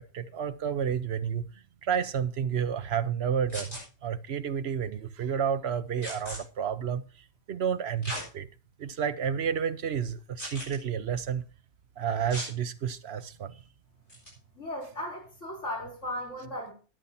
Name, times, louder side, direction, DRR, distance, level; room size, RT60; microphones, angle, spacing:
voice 1, 0.1-1.4 1.8-7.0 7.5-8.5 8.8-11.4 12.0-13.5, right 7 dB, 60° right, 1.1 m, -30 dB
sound 1, 3.5-3.8 6.0-6.4 8.0-8.3 8.9-9.0 10.4-10.8 12.3-12.5 14.1-14.3, equal, 40° left, 7.5 m, -37 dB
voice 2, 14.5-16.7, left 1 dB, 70° left, 5.7 m, -36 dB
12.5 x 10.0 x 4.2 m
omnidirectional pair, 1.3 m